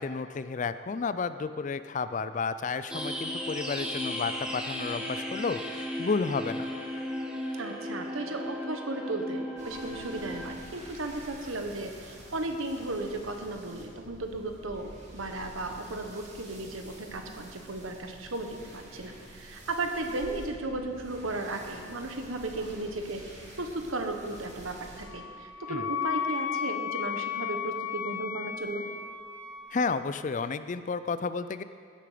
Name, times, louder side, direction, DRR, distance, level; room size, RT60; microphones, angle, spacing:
voice 1, 0.0-6.7 25.7-25.8 29.7-31.6, left 4 dB, 40° left, 12 dB, 0.4 m, -32 dB
sound 1, 2.9-10.5, equal, 5° right, 1.0 m, -35 dB
voice 2, 7.6-28.8, right 2 dB, 85° right, 4 dB, 1.3 m, -35 dB
sound 2, 9.6-25.0, right 1 dB, 35° right, 2.4 m, -49 dB
Wind instrument woodwind instrument, 25.1-29.8, left 8 dB, 75° left, 1.3 m, -34 dB
16.0 x 8.6 x 5.1 m, 2.2 s
head